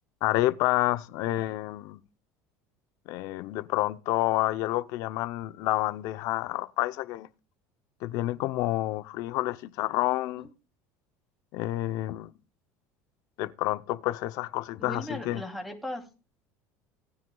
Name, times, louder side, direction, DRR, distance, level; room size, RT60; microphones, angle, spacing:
voice 1, 0.2-2.0 3.1-7.3 8.0-10.5 11.5-12.3 13.4-15.4, left 16 dB, 65° left, 0.6 m, -29 dB
voice 2, 14.8-16.0, left 1 dB, ahead, 2.7 m, -37 dB
17.5 x 9.3 x 2.3 m
supercardioid pair, 125°, 7 cm